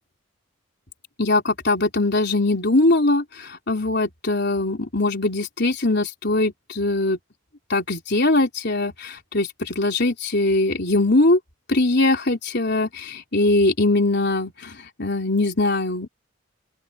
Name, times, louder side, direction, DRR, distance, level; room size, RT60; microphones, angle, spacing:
voice 1, 1.2-7.2 7.7-11.4 11.7-16.1, left 2 dB, 55° left, 4.2 m, -21 dB
open air
head